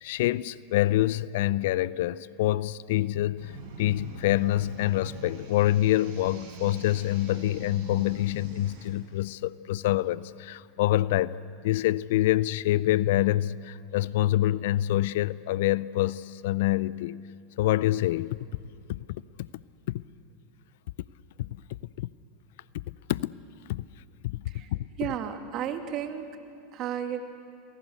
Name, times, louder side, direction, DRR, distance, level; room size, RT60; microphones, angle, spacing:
voice 1, 0.0-3.5 3.8-11.4 11.6-17.2 17.6-18.4 18.9-19.0 19.4-19.5 19.9-20.0 21.4-21.5 22.0-22.1 22.7-23.4 23.7-23.8 24.2-24.9, left 15 dB, 70° left, 0.5 m, -26 dB
sound 1, 3.4-8.9, right 4 dB, 65° right, 5.9 m, -45 dB
voice 2, 25.0-26.3 26.7-27.2, right 9 dB, 50° right, 2.6 m, -33 dB
29.0 x 20.5 x 8.1 m
hypercardioid pair, 90°, 0 cm